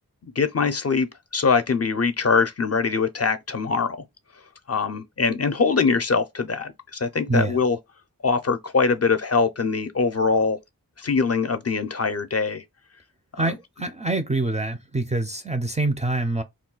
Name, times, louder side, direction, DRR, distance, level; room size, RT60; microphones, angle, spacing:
voice 1, 0.2-1.1 1.3-4.0 4.7-7.8 8.2-10.6 11.0-12.6 13.3-13.5, left 4 dB, 45° left, 0.4 m, -23 dB
voice 2, 7.3-7.6 13.4-16.4, right 2 dB, 20° right, 0.4 m, -25 dB
2.3 x 2.2 x 3.7 m
wide cardioid pair, 75°, 37 cm